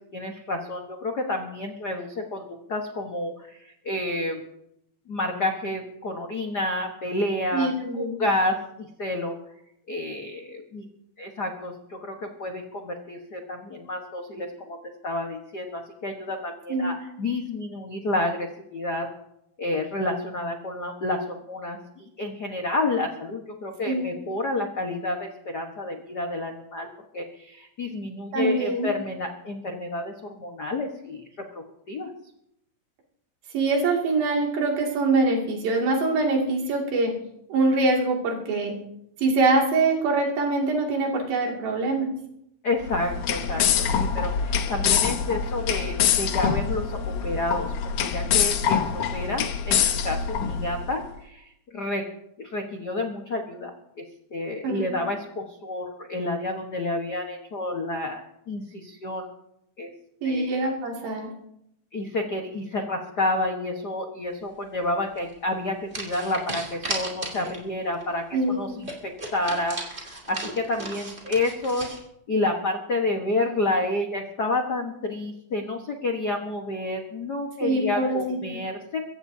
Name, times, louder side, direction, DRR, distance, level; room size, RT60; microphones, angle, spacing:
voice 1, 0.1-4.4 5.1-7.7 7.9-9.3 9.9-10.9 11.2-14.8 15.0-19.1 19.6-26.9 27.1-31.2 31.5-32.1 42.6-47.7 48.0-52.0 52.4-54.0 54.3-58.2 58.5-59.3 59.8-59.9 60.2-60.5 61.9-71.9 72.3-79.0, left 2 dB, 70° left, 2 dB, 0.9 m, -29 dB
voice 2, 7.5-8.2 16.7-16.9 23.9-24.1 28.3-28.9 33.5-37.1 37.5-38.8 39.2-42.2 54.6-54.9 60.2-61.3 68.3-68.6 77.6-78.2 78.5-78.6, right 3 dB, 90° right, 0 dB, 4.3 m, -24 dB
sound 1, 42.8-50.9, left 7 dB, 85° left, 1.3 m, -25 dB
sound 2, 65.1-65.3 65.9-67.7 68.0-68.1 68.4-68.5 68.8-72.0, right 2 dB, 20° right, 2.4 m, -35 dB
23.0 x 16.0 x 2.8 m, 0.79 s
omnidirectional pair, 4.1 m